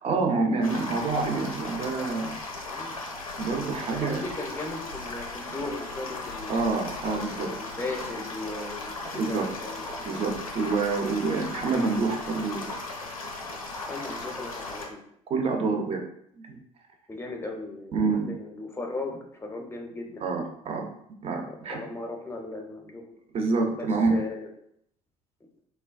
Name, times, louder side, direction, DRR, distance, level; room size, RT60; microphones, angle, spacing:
voice 1, 0.0-2.3 3.4-4.2 6.5-7.5 9.1-9.5 10.1-12.7 15.3-16.0 16.5-16.6 17.9-18.3 20.2-20.8 21.2-21.8 23.3-24.2, right 3 dB, 35° right, 3 dB, 0.5 m, -27 dB
sound 1, 0.6-14.9, left 3 dB, 85° left, 0.4 m, -37 dB
voice 2, 3.9-6.7 7.4-10.2 13.9-15.0 17.1-20.3 21.5-23.0 23.7-24.5, left 2 dB, 15° left, 2 dB, 0.6 m, -37 dB
3.2 x 2.2 x 2.3 m, 0.71 s
figure-of-eight pair, 60°, 18 cm